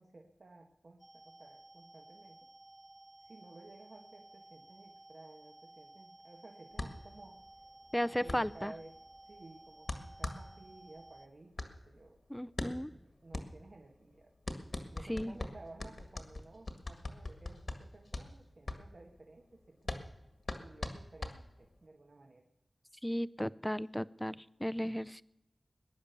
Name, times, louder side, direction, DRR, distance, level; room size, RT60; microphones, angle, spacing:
voice 1, 0.0-2.5 3.2-7.4 8.2-9.0 9.3-12.2 12.6-14.3 14.9-20.0 20.5-22.5 23.4-23.8, right 2 dB, 65° right, 3 dB, 1.3 m, -55 dB
sound 1, 1.0-11.3, right 2 dB, 30° right, 0.8 m, -56 dB
sound 2, 6.7-21.9, left 2 dB, 65° left, 1.7 m, -43 dB
voice 2, 7.9-8.7 12.3-12.9 15.1-15.4 23.0-25.2, equal, 10° left, 17 dB, 0.5 m, -35 dB
20.5 x 10.5 x 6.7 m, 0.90 s
wide cardioid pair, 60°, 0 cm